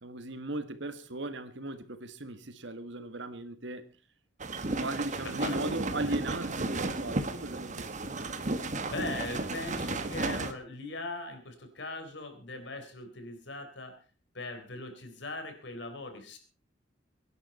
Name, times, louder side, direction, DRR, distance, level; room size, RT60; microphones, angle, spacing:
voice 1, 0.0-3.9 4.8-7.9, right 2 dB, 70° right, 1.7 m, -37 dB
sound 1, 4.4-10.5, right 2 dB, 40° right, 1.4 m, -33 dB
voice 2, 5.2-5.8 6.1-6.2 8.5-14.0 14.3-16.4, left 2 dB, 65° left, 4.0 m, -40 dB
23.5 x 11.0 x 4.2 m
head